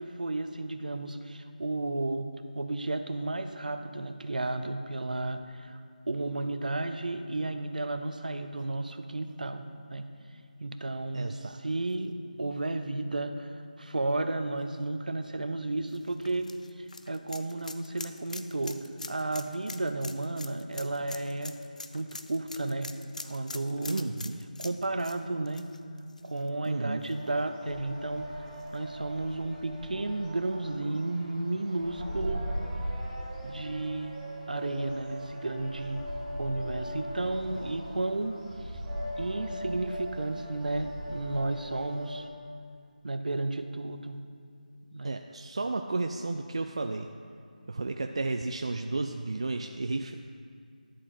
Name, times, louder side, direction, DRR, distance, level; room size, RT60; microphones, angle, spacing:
voice 1, 0.0-2.3 2.5-5.8 6.1-10.1 10.6-16.5 17.1-18.8 19.1-21.6 21.9-22.9 23.2-24.1 24.6-25.7 26.2-28.3 28.7-32.4 33.4-34.2 34.5-36.0 36.4-38.4 39.2-42.3 43.0-44.2 44.9-45.2, right 2 dB, 65° right, 8 dB, 0.8 m, -33 dB
voice 2, 11.1-11.6 23.9-24.4 26.7-27.0 45.0-47.1 47.7-50.1, right 3 dB, 40° right, 5 dB, 0.3 m, -32 dB
sound 1, 15.9-26.7 27.0-27.1 28.6-28.7, left 3 dB, 55° left, 0.5 m, -44 dB
sound 2, 27.1-42.2, equal, 10° right, 1.5 m, -39 dB
11.0 x 7.5 x 4.3 m, 2.3 s
figure-of-eight pair, 175°, 5 cm